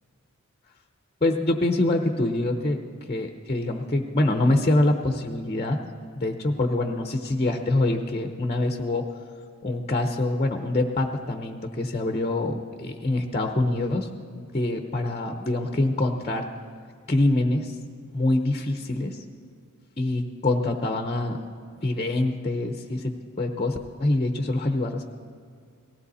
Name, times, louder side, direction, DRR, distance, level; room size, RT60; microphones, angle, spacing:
voice 1, 1.2-2.8 3.1-5.8 6.2-9.0 9.6-14.1 14.4-16.5 17.1-17.7 18.1-19.2 20.0-21.4 21.8-25.0, left 2 dB, 30° left, 4 dB, 0.8 m, -25 dB
19.0 x 16.0 x 4.2 m, 2.2 s
head